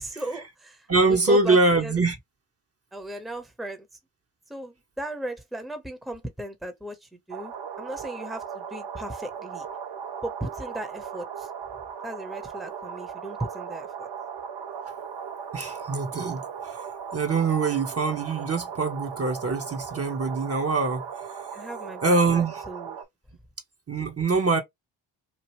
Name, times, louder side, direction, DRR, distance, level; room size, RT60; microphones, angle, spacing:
voice 1, 0.0-2.0 2.9-3.9 4.5-9.7 10.2-11.5 12.0-14.1 21.5-23.0, right 1 dB, ahead, 0.9 m, -36 dB
voice 2, 0.9-2.2 15.5-16.8 17.1-21.0 22.0-22.6 23.9-24.6, right 3 dB, 30° right, 1.0 m, -24 dB
sound 1, 7.3-23.0, right 7 dB, 60° right, 0.8 m, -37 dB
3.1 x 2.4 x 3.0 m
hypercardioid pair, 45°, 46 cm